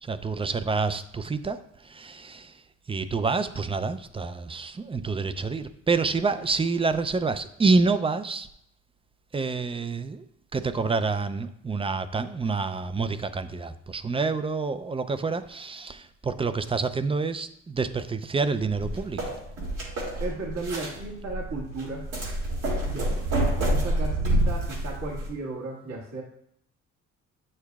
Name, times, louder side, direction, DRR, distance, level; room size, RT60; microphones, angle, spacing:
voice 1, 0.0-2.6 2.9-8.5 9.3-10.3 10.5-19.4, right 4 dB, 20° right, 12 dB, 0.4 m, -28 dB
sound 1, 18.7-25.3, right 1 dB, 85° right, 2.5 m, -28 dB
voice 2, 20.2-22.0 22.8-23.1 23.7-26.2, right 3 dB, 60° right, -2 dB, 1.8 m, -35 dB
8.8 x 6.6 x 2.4 m, 0.71 s
cardioid pair, 90°, 30 cm